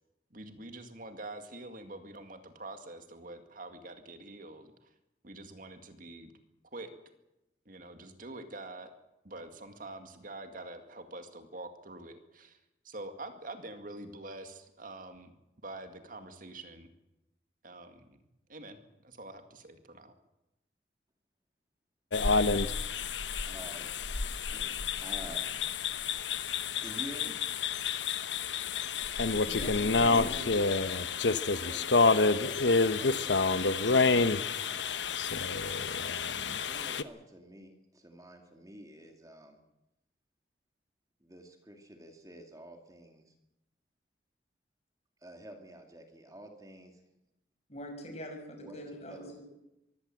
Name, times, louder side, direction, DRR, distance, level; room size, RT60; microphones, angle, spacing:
voice 1, 0.3-4.9 5.2-6.3 6.7-6.9 7.7-8.9 9.2-12.6 12.8-15.3 15.6-16.9 17.6-18.2 18.5-18.8 19.0-20.1, right 2 dB, 50° right, 7 dB, 2.2 m, -45 dB
sound 1, 22.1-37.0, left 4 dB, 85° left, 1.0 m, -29 dB
voice 2, 23.5-23.9 24.5-25.8 26.8-27.4 30.2-31.2 31.5-33.7 34.6-35.1 36.5-39.6 41.2-43.3 45.2-47.0 48.6-48.8 49.1-49.3, right 1 dB, 20° right, 4 dB, 2.4 m, -49 dB
voice 3, 29.5-30.5 47.7-49.4, equal, 40° left, 4 dB, 6.1 m, -42 dB
23.5 x 16.5 x 7.8 m, 0.91 s
head